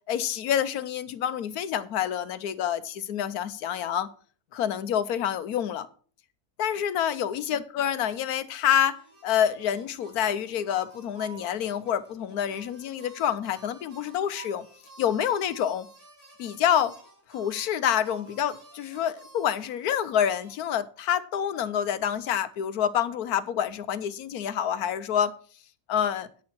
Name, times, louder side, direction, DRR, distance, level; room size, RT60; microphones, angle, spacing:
voice 1, 0.1-4.1 4.5-5.9 6.6-9.0 9.2-14.7 15.0-15.9 16.4-16.9 17.3-25.3 25.9-26.3, left 9 dB, 75° left, 1.2 m, -27 dB
sound 1, 8.9-20.6, right 4 dB, 70° right, 5.9 m, -51 dB
9.5 x 7.0 x 6.1 m
omnidirectional pair, 1.6 m